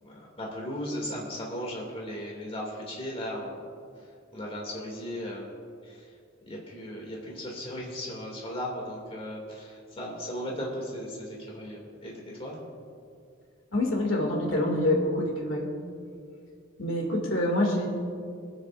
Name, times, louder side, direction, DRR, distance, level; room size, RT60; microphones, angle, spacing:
voice 1, 0.0-3.6 4.0-5.5 5.8-6.1 6.4-12.1 12.4-12.5, equal, 30° left, -3 dB, 2.6 m, -36 dB
voice 2, 13.7-15.7 16.8-17.9, left 1 dB, 70° left, 0 dB, 2.5 m, -26 dB
27.0 x 9.6 x 2.6 m, 2.4 s
head